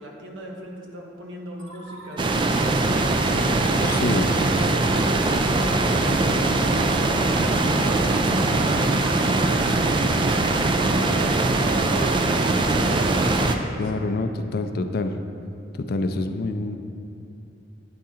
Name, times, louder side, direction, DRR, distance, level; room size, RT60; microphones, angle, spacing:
voice 1, 0.0-3.3 3.8-7.8 8.2-10.1 10.6-14.0, right 1 dB, 90° right, 0 dB, 1.0 m, -38 dB
sound 1, 1.6-12.5, right 1 dB, 65° right, 1.2 m, -42 dB
sound 2, 2.2-13.6, right 2 dB, 25° right, 0.3 m, -21 dB
sound 3, 3.0-8.4, equal, 5° left, 1.0 m, -38 dB
voice 2, 3.8-4.3 13.8-15.2 15.7-16.8, left 3 dB, 55° left, 8 dB, 0.4 m, -26 dB
8.8 x 3.7 x 4.2 m, 2.7 s
head